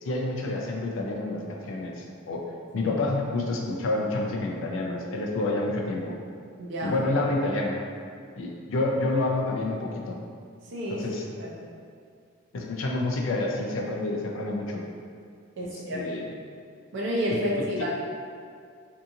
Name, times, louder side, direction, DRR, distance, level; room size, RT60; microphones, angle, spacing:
voice 1, 0.0-6.2 6.8-7.8 8.4-10.2 10.9-11.2 12.5-14.8 15.6-16.3 17.3-17.4 17.8-17.9, left 2 dB, 60° left, 0 dB, 0.3 m, -29 dB
voice 2, 6.6-6.9 10.7-11.0 11.4-11.5 15.6-16.0 16.9-17.9, equal, 55° right, -4 dB, 0.5 m, -30 dB
2.7 x 2.5 x 2.6 m, 2.2 s
head